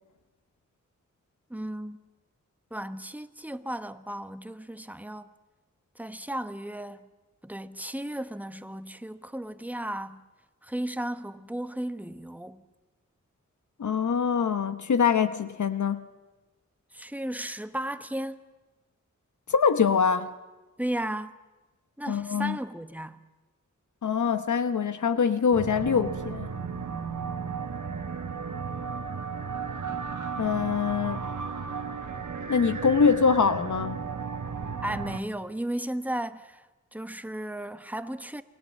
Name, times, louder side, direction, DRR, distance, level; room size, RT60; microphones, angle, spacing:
voice 1, 1.5-2.0 2.7-5.3 5.9-7.1 7.4-10.2 10.6-12.6 16.9-18.4 20.8-21.4 22.0-23.2 34.8-36.7 36.9-38.4, right 1 dB, 5° right, 1.0 m, -35 dB
voice 2, 13.8-16.1 19.5-20.3 22.1-22.6 24.0-26.5 30.4-31.3 32.5-34.0, left 6 dB, 75° left, 1.0 m, -24 dB
sound 1, 25.5-35.2, right 5 dB, 85° right, 1.5 m, -34 dB
29.0 x 20.5 x 7.4 m
wide cardioid pair, 75°, 30 cm